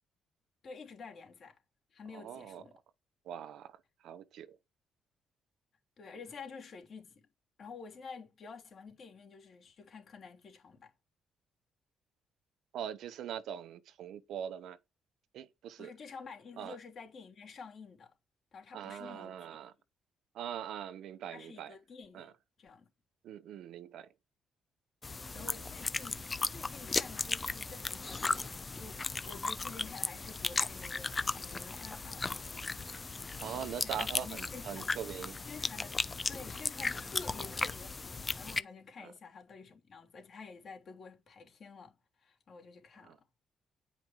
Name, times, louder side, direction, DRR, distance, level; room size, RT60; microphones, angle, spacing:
voice 1, 0.6-1.6 1.9-2.8 6.0-7.3 7.6-10.9 15.8-18.1 18.5-19.6 21.3-22.3 22.6-22.9 25.3-26.2 26.5-32.3 33.5-34.9 35.4-43.2, left 5 dB, 55° left, 3.1 m, -50 dB
voice 2, 2.1-2.6 3.2-4.6 12.7-14.8 15.3-15.9 16.6-16.8 18.7-19.7 20.3-21.8 22.1-22.3 23.2-24.1 25.2-25.7 33.4-35.4 39.0-39.1 43.0-43.2, right 9 dB, 80° right, 0.9 m, -42 dB
sound 1, 25.0-38.6, left 3 dB, 25° left, 0.6 m, -36 dB
9.2 x 5.1 x 4.7 m
cardioid pair, 90°, 0 cm